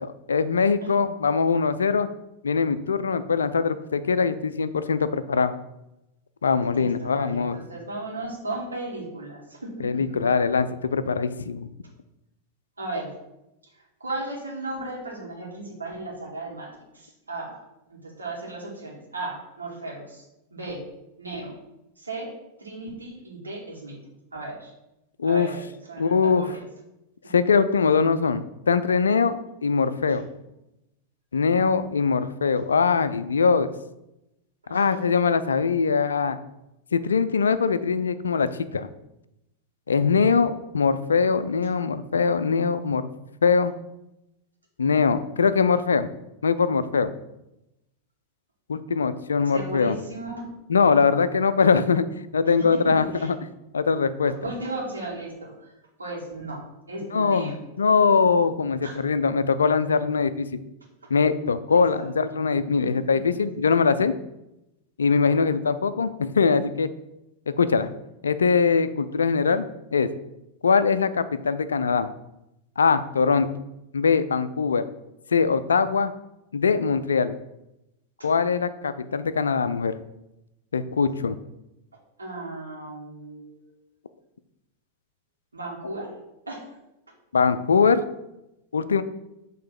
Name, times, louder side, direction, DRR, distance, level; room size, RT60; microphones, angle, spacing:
voice 1, 0.0-2.1 2.4-5.5 6.4-7.6 9.8-11.7 25.2-25.5 26.0-26.5 27.3-30.3 31.3-33.7 34.7-36.4 36.9-38.9 39.9-43.0 43.4-43.7 44.8-46.1 46.4-47.1 48.7-50.0 50.7-52.1 52.3-53.4 53.7-54.3 57.1-60.6 61.1-64.1 65.0-66.9 67.5-67.9 68.2-69.7 69.9-70.1 70.6-72.1 72.8-73.5 73.9-74.8 75.3-76.1 76.5-77.4 78.2-80.0 80.7-81.4 87.3-88.0 88.7-89.0, left 5 dB, 70° left, 13 dB, 0.4 m, -22 dB
voice 2, 6.7-10.0 12.8-13.1 13.7-16.7 16.9-17.6 17.9-20.3 20.5-20.8 21.2-21.6 22.0-22.3 22.6-24.0 24.3-24.7 25.2-26.6 30.1-30.2 34.6-34.9 49.4-50.5 52.4-53.3 54.2-56.6 56.9-57.6 58.8-59.0 61.7-62.1 62.8-62.9 78.2-78.3 82.2-83.7 85.5-86.1 86.5-86.6, right 2 dB, 80° right, -2 dB, 1.8 m, -35 dB
6.6 x 3.2 x 5.9 m, 0.90 s
figure-of-eight pair, 90°, 0 cm